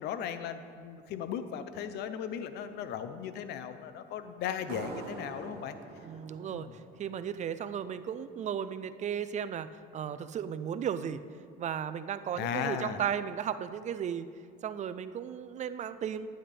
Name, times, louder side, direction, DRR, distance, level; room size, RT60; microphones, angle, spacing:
voice 1, 0.0-5.7 6.5-6.7 12.3-13.0, left 8 dB, 80° left, 10 dB, 0.7 m, -37 dB
sound 1, 4.7-8.0, right 5 dB, 75° right, 1.0 m, -46 dB
voice 2, 6.0-11.2 11.6-14.3 14.6-16.3, right 8 dB, 45° right, 13 dB, 0.5 m, -35 dB
11.5 x 10.0 x 3.4 m, 2.2 s
cardioid pair, 110°, 17 cm